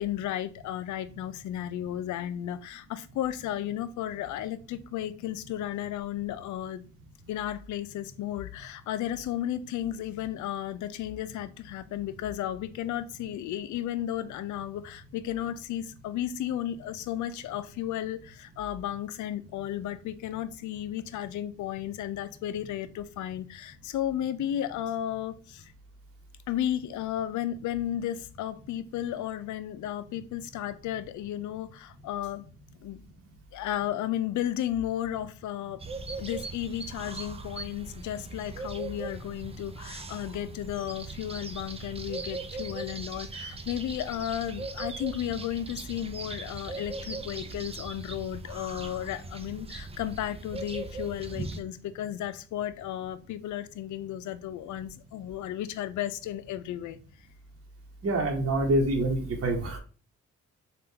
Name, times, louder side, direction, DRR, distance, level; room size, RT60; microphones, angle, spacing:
voice 1, 0.0-6.8 7.3-25.7 26.5-32.4 32.8-33.0 33.5-35.8 36.2-57.0, left 11 dB, 80° left, 0.5 m, -34 dB
sound 1, 35.8-51.6, right 3 dB, 20° right, 0.5 m, -39 dB
voice 2, 58.0-59.8, right 1 dB, 50° right, 1.0 m, -26 dB
3.5 x 2.5 x 2.8 m
cardioid pair, 70°, 29 cm